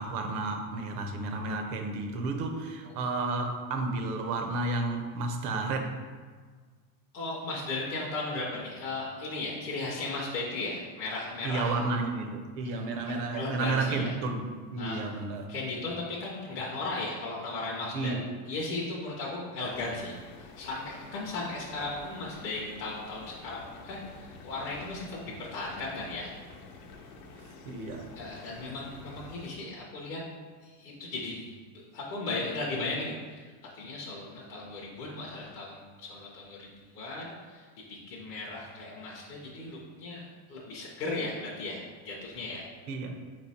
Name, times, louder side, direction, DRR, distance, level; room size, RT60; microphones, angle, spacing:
voice 1, 0.0-6.0 11.4-15.5 17.9-18.2 27.7-28.1 42.9-43.2, right 3 dB, 60° right, 5 dB, 0.7 m, -32 dB
voice 2, 7.1-11.8 12.6-12.8 13.1-14.2 14.8-15.0 15.5-18.2 18.5-26.3 28.1-30.2 30.6-31.5 31.7-33.5 33.7-42.6, left 2 dB, 30° left, -4 dB, 0.5 m, -36 dB
sound 1, 19.7-29.5, left 4 dB, 75° left, 0.8 m, -49 dB
4.0 x 3.1 x 4.0 m, 1.5 s
supercardioid pair, 150°, 49 cm